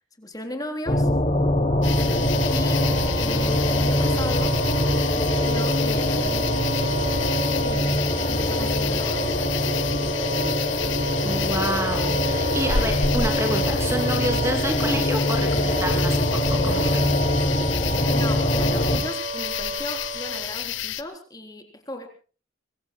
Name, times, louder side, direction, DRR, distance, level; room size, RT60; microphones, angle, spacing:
voice 1, 0.2-1.1 2.5-2.9 3.2-4.6 5.2-6.5 7.6-9.4 18.1-22.1, left 1 dB, 20° left, 5 dB, 3.8 m, -36 dB
sound 1, 0.8-19.0, left 1 dB, 35° left, 2.7 m, -23 dB
Wind instrument woodwind instrument, 1.6-20.7, right 3 dB, 30° right, 5.8 m, -33 dB
sound 2, 1.8-21.0, left 9 dB, 70° left, 1.1 m, -31 dB
voice 2, 11.1-17.0, right 1 dB, 15° right, 4 dB, 2.9 m, -29 dB
26.0 x 23.0 x 2.3 m, 0.38 s
head